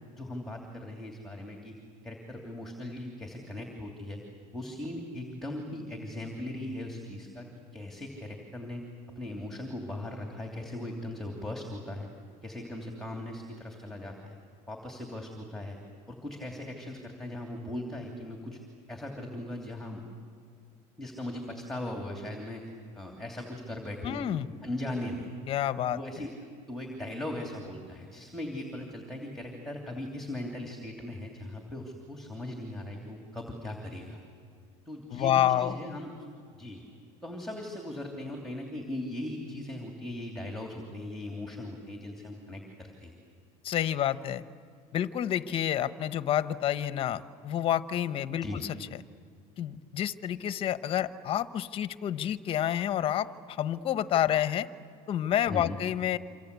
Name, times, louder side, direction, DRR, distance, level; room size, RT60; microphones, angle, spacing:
voice 1, 0.1-1.8 2.0-4.2 4.5-7.5 7.7-8.8 9.2-12.1 12.4-14.4 14.7-15.8 16.1-18.6 18.9-20.0 21.0-24.2 24.6-25.3 25.9-26.3 26.7-34.2 34.9-36.1 36.5-36.8 37.2-43.1 48.4-48.6 55.5-55.8, left 1 dB, ahead, 2 dB, 2.9 m, -39 dB
voice 2, 24.0-24.5 25.5-26.0 35.1-35.8 43.6-44.4 44.9-48.8 49.6-54.7 55.1-56.2, left 11 dB, 40° left, 13 dB, 1.0 m, -29 dB
27.5 x 26.0 x 8.3 m, 2.3 s
cardioid pair, 145°, 15 cm